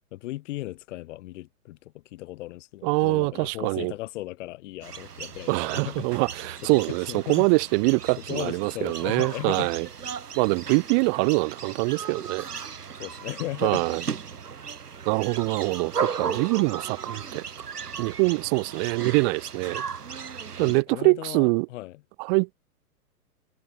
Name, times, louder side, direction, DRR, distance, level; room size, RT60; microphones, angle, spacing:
voice 1, 0.1-6.1 6.7-7.5 8.3-9.7 13.0-14.0 20.6-22.0, left 17 dB, 50° left, 7.5 m, -36 dB
voice 2, 2.8-3.9 5.5-9.9 10.3-12.5 13.6-14.0 15.0-17.4 18.0-19.8 20.6-21.7 22.2-22.5, right 36 dB, 35° right, 1.2 m, -24 dB
sound 1, 4.8-20.8, right 6 dB, 75° right, 2.7 m, -36 dB
figure-of-eight pair, 110°, 47 cm